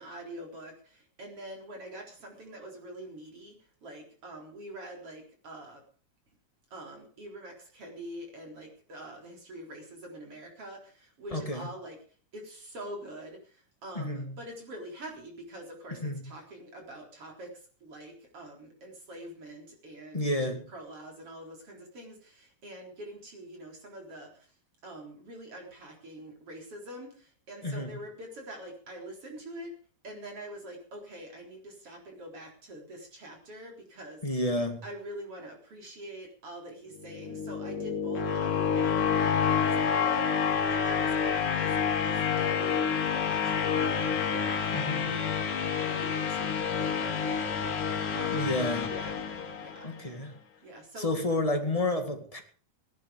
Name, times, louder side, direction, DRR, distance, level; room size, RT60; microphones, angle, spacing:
voice 1, 0.0-5.8 6.7-12.0 12.3-24.5 24.8-29.7 30.0-34.2 34.8-48.5 48.9-49.2 49.6-50.1 50.6-51.4, right 1 dB, 45° right, 4.9 m, -45 dB
voice 2, 11.3-11.7 13.9-14.3 16.0-16.2 20.1-20.7 27.6-28.0 34.2-34.8 44.7-45.1 48.3-48.9 49.8-50.3 51.0-52.4, left 1 dB, 15° left, 1.6 m, -30 dB
sound 1, 37.0-50.0, left 7 dB, 85° left, 3.6 m, -28 dB
17.5 x 11.5 x 5.1 m
omnidirectional pair, 3.5 m